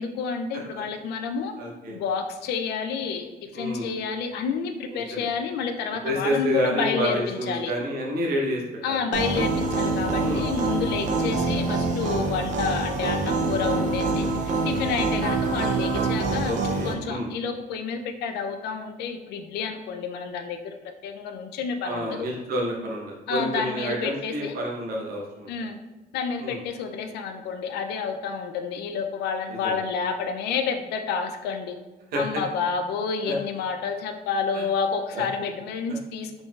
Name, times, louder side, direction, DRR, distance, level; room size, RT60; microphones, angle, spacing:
voice 1, 0.0-1.5 1.9-7.7 8.8-14.3 14.6-16.6 16.8-20.7 21.0-22.3 23.3-24.6 25.5-25.8 26.1-31.7 32.1-36.4, left 5 dB, 90° left, 6 dB, 0.4 m, -29 dB
voice 2, 1.6-2.0 3.5-3.9 4.9-5.3 6.0-8.6 8.9-9.0 10.2-10.4 16.4-17.3 21.8-25.5 26.4-26.6 29.5-29.8 32.1-32.2 33.3-33.4 34.5-34.6 35.1-35.2, equal, 70° right, -2 dB, 0.9 m, -29 dB
sound 1, 9.1-16.9, right 3 dB, 50° right, 0.5 m, -25 dB
3.8 x 3.7 x 2.3 m, 1.2 s
cardioid pair, 160°, 17 cm